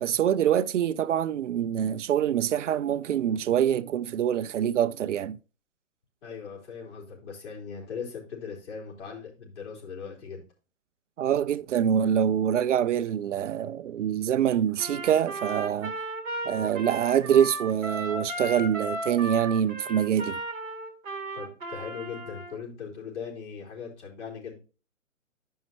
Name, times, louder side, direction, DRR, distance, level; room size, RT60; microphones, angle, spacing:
voice 1, 0.0-5.4 11.2-15.9 16.4-20.4, right 9 dB, 65° right, 0.5 m, -25 dB
voice 2, 6.2-10.4 21.3-24.5, left 6 dB, 60° left, 3.8 m, -39 dB
Trumpet, 14.8-22.5, right 1 dB, 5° right, 0.4 m, -35 dB
11.0 x 5.5 x 2.9 m
hypercardioid pair, 140°, 40 cm